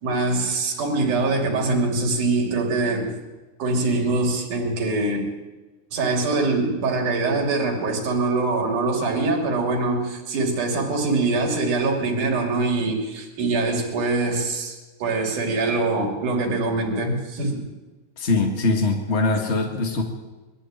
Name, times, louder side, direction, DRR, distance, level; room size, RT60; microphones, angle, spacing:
voice 1, 0.0-3.2 3.6-5.3 5.9-17.6, right 3 dB, 70° right, 1 dB, 4.4 m, -23 dB
voice 2, 18.2-20.0, left 3 dB, 30° left, 2 dB, 1.4 m, -22 dB
22.0 x 13.5 x 9.0 m, 1.2 s
omnidirectional pair, 3.7 m